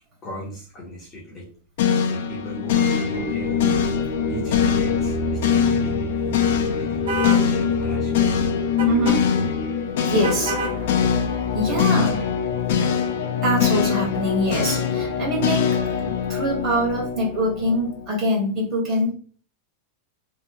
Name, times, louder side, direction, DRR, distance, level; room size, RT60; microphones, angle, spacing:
voice 1, 0.2-1.5 2.0-3.8 4.3-8.5 8.8-9.6 11.6-13.0, equal, 20° left, -5 dB, 0.7 m, -37 dB
sound 1, 1.8-18.1, left 7 dB, 60° left, 0.5 m, -23 dB
voice 2, 2.8-3.3 8.9-9.3 10.1-11.1 11.5-12.2 13.4-15.8 16.1-19.1, equal, 25° right, -4 dB, 1.3 m, -24 dB
sound 2, 7.1-7.5 8.8-9.2 10.2-10.8, right 2 dB, 75° right, 0.8 m, -27 dB
3.0 x 2.6 x 2.6 m, 0.43 s
supercardioid pair, 175°, 0 cm